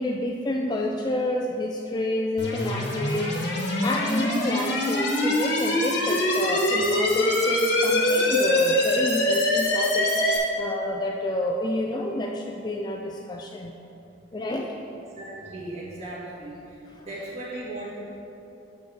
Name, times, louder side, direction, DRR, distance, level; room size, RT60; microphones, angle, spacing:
voice 1, 0.0-13.7 14.3-14.7, left 1 dB, 20° left, 1 dB, 0.3 m, -29 dB
sound 1, 2.4-10.4, left 1 dB, 55° left, 1.3 m, -24 dB
voice 2, 15.1-18.1, right 1 dB, 35° right, -7 dB, 1.9 m, -37 dB
9.3 x 3.5 x 6.1 m, 2.8 s
head